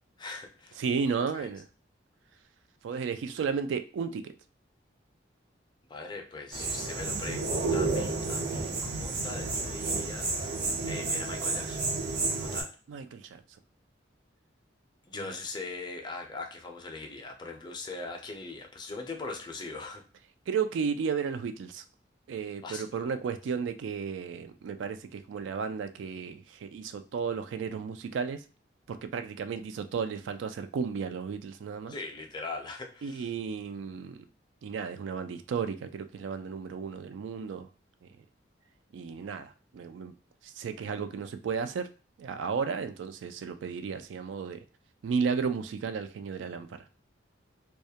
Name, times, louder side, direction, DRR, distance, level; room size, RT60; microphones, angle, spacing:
voice 1, 0.2-0.8 1.3-1.5 5.9-10.3 10.9-11.8 12.3-12.7 15.1-20.0 22.6-22.8 31.9-33.3, left 3 dB, 25° left, 0.4 m, -40 dB
voice 2, 0.8-1.7 2.8-4.3 12.9-13.4 15.1-15.4 20.5-21.8 22.3-28.4 28.9-31.9 33.0-34.2 34.6-37.7 38.0-38.1 38.9-40.1 40.4-41.9 42.2-44.6 45.0-46.8, right 6 dB, 80° right, 0.3 m, -33 dB
sound 1, 6.5-12.6, right 3 dB, 55° right, 0.7 m, -31 dB
2.3 x 2.1 x 2.7 m
head